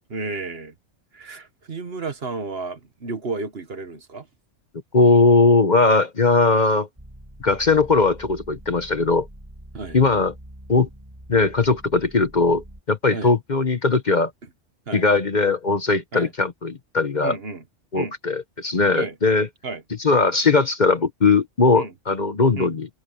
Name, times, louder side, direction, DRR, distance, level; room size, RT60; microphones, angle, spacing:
voice 1, 0.1-0.7 1.1-4.3 9.7-10.0 13.1-13.3 14.9-15.1 16.1-16.3 17.2-17.6 17.9-18.1 18.9-19.2 19.6-19.8 21.7-21.9 22.6-22.7, right 3 dB, 55° right, 1.6 m, -32 dB
voice 2, 4.9-6.9 7.4-9.3 9.9-10.3 10.7-10.9 11.3-14.3 14.9-17.4 17.9-19.5 20.0-22.9, left 3 dB, 40° left, 1.1 m, -19 dB
sound 1, 7.0-12.8, equal, 20° right, 5.9 m, -44 dB
omnidirectional pair, 1.3 m